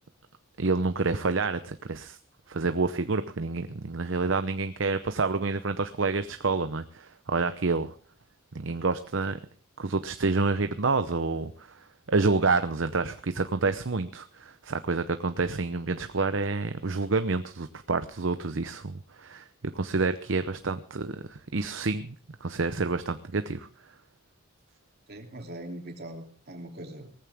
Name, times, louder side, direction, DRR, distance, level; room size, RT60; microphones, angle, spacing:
voice 1, 0.6-2.2 2.5-7.9 8.5-9.4 9.8-19.5 19.7-22.1 22.4-23.7, right 3 dB, 65° right, 10 dB, 0.8 m, -28 dB
voice 2, 25.1-27.1, right 1 dB, 50° right, 3 dB, 2.9 m, -41 dB
19.0 x 14.5 x 3.5 m, 0.42 s
head